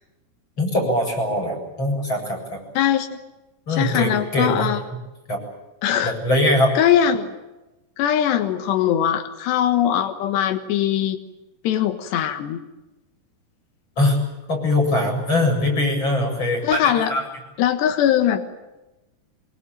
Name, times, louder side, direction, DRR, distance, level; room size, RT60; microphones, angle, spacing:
voice 1, 0.6-2.6 3.7-4.7 5.3-5.4 6.0-6.7 14.0-14.2 14.5-17.2, left 1 dB, 25° left, 2 dB, 8.1 m, -22 dB
voice 2, 2.8-3.1 3.7-4.8 5.8-6.1 6.8-7.4 8.0-11.2 11.7-12.6 16.6-17.1 17.6-18.4, left 10 dB, 90° left, 9 dB, 3.6 m, -21 dB
24.5 x 23.0 x 9.0 m, 1.0 s
omnidirectional pair, 4.8 m